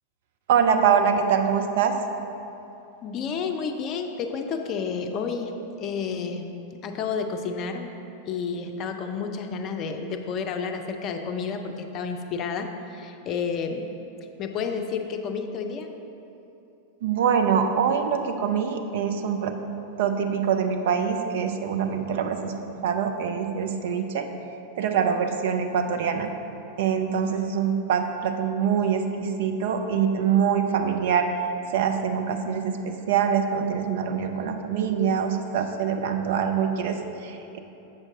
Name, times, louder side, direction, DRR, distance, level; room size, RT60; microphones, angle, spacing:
voice 1, 0.5-1.9 17.0-19.5 20.0-22.5 22.8-24.3 24.8-26.3 26.8-31.3 31.7-37.6, right 7 dB, 55° right, 5 dB, 0.5 m, -24 dB
voice 2, 3.0-6.6 6.8-7.9 8.3-13.9 14.4-15.9, left 5 dB, 35° left, 5 dB, 0.5 m, -30 dB
7.6 x 6.4 x 3.6 m, 2.9 s
figure-of-eight pair, 90°, 0 cm